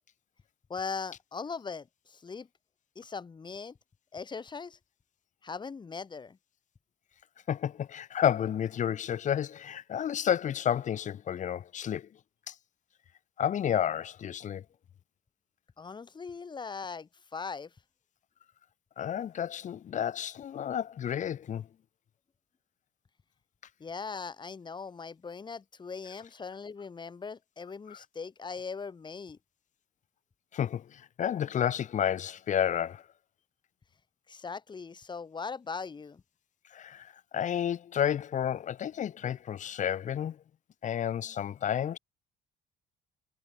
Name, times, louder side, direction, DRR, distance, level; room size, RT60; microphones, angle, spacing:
voice 1, 0.7-2.5 3.0-3.8 4.1-4.8 5.4-6.4 15.8-17.7 23.8-29.4 34.3-36.2, left 5 dB, 25° left, 2.2 m, -40 dB
voice 2, 7.5-12.1 12.5-12.6 13.4-14.6 19.0-21.7 30.5-33.0 36.7-40.4 40.8-42.0, left 9 dB, 45° left, 1.3 m, -31 dB
cardioid pair, 110°, 17 cm